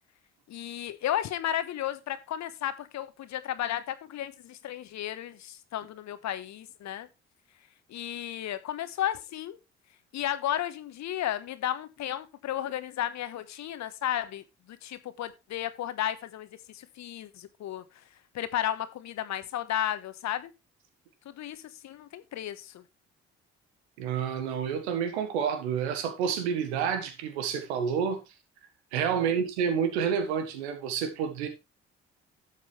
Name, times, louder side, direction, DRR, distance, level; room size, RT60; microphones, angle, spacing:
voice 1, 0.5-7.1 7.9-9.6 10.1-16.5 16.7-17.8 18.3-20.5 21.2-22.8 29.1-29.4, left 11 dB, 55° left, 1.2 m, -33 dB
voice 2, 24.0-28.2 28.9-31.5, right 7 dB, 75° right, 1.6 m, -29 dB
12.0 x 7.4 x 3.3 m
figure-of-eight pair, 45°, 33 cm